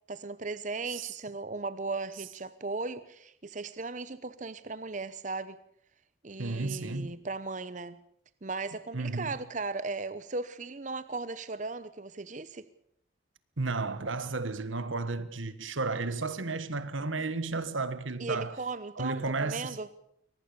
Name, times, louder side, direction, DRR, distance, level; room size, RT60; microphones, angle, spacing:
voice 1, 0.1-5.6 6.2-8.0 8.4-12.7 18.2-19.9, right 3 dB, 40° right, 0.8 m, -37 dB
voice 2, 6.4-7.2 8.9-9.3 13.6-18.6 19.0-19.8, right 3 dB, 90° right, 1.5 m, -33 dB
23.5 x 19.0 x 6.8 m
head